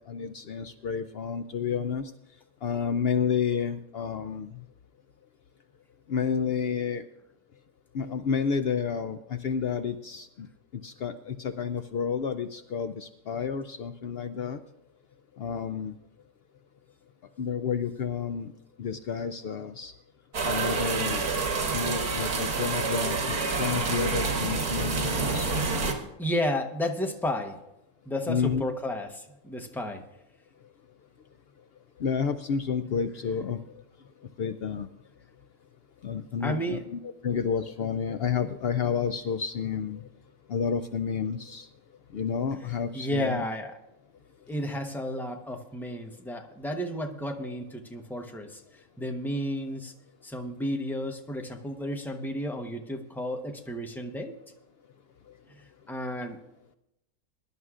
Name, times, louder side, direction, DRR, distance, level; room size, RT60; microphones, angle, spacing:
voice 1, 0.1-2.0 2.6-4.5 6.1-7.0 7.9-10.5 10.8-14.6 15.4-15.9 17.4-18.5 18.8-19.9 20.5-21.3 21.7-25.5 28.3-28.6 32.0-33.6 34.4-34.9 36.0-40.0 40.5-41.7 42.1-43.4, left 6 dB, 90° left, 9 dB, 0.5 m, -30 dB
sound 1, 20.3-25.9, right 4 dB, 85° right, 2.2 m, -28 dB
voice 2, 26.2-27.6 28.1-30.1 36.4-36.8 42.9-43.7 44.5-48.6 49.0-49.9 50.2-54.4 55.5-56.4, equal, ahead, 4 dB, 0.7 m, -32 dB
22.5 x 11.0 x 2.5 m, 0.86 s
omnidirectional pair, 1.6 m